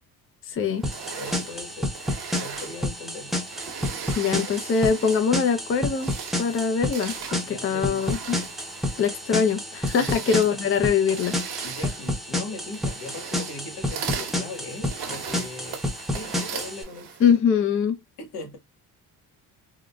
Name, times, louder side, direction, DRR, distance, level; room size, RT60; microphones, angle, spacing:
voice 1, 0.4-0.9 4.1-6.1 6.4-8.4 9.0-11.3 17.2-18.0, left 6 dB, 35° left, 0.5 m, -23 dB
sound 1, 0.8-16.8, left 1 dB, ahead, 0.7 m, -30 dB
sound 2, 0.8-5.4 5.8-17.4, right 7 dB, 75° right, 1.0 m, -38 dB
voice 2, 1.1-1.9 2.4-3.4 7.4-8.2 10.0-10.2 11.6-17.4 18.2-18.6, left 2 dB, 80° left, 1.4 m, -39 dB
3.7 x 2.1 x 2.2 m
cardioid pair, 120°, 39 cm